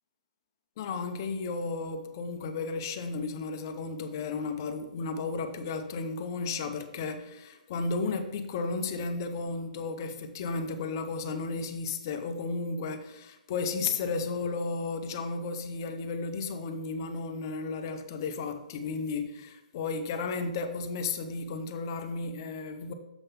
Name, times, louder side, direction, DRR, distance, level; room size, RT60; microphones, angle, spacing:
voice 1, 0.8-22.9, left 4 dB, 25° left, 0.5 m, -33 dB
6.7 x 3.6 x 5.6 m
hypercardioid pair, 175°, 4 cm